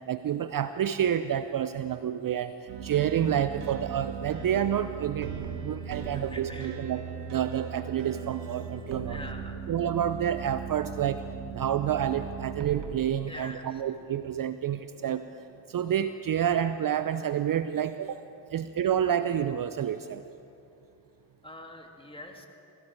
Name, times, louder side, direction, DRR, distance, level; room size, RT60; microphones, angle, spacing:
voice 1, 0.1-7.0 7.3-9.2 9.7-11.2 11.5-15.2 15.7-18.2 18.5-20.2, right 9 dB, 45° right, 12 dB, 0.6 m, -29 dB
sound 1, 2.7-13.4, right 6 dB, 85° right, 1.2 m, -38 dB
voice 2, 6.1-6.8 9.1-9.6 13.3-13.8 21.4-22.5, left 1 dB, 10° left, 2 dB, 2.6 m, -44 dB
21.0 x 14.5 x 4.7 m, 2.6 s
hypercardioid pair, 40°, 48 cm